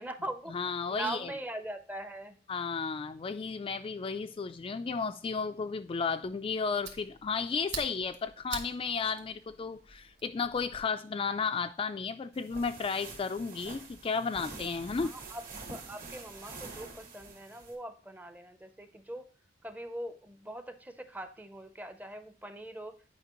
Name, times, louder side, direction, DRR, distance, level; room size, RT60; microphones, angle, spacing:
voice 1, 0.0-0.5 0.9-2.4 15.0-15.4 15.7-19.3 19.6-22.9, right 1 dB, 10° right, 0.6 m, -41 dB
voice 2, 0.5-1.3 2.5-15.1, left 5 dB, 30° left, 0.3 m, -33 dB
Fire, 6.2-10.8, right 4 dB, 85° right, 1.4 m, -46 dB
sound 1, 12.3-17.7, right 3 dB, 55° right, 2.1 m, -46 dB
9.2 x 5.1 x 2.9 m
head